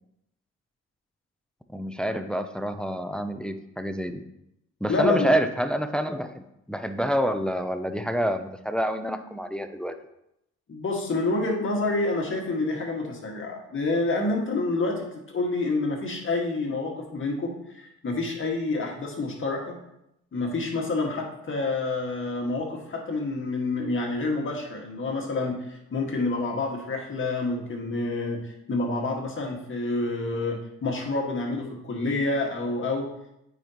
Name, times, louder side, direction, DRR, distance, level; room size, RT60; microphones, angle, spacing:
voice 1, 1.7-4.2 4.8-9.9, equal, 5° left, 8 dB, 0.5 m, -27 dB
voice 2, 4.9-5.3 10.7-19.8 20.3-33.1, left 2 dB, 40° left, 0 dB, 1.8 m, -28 dB
8.9 x 5.2 x 2.9 m, 0.82 s
cardioid pair, 90°, 30 cm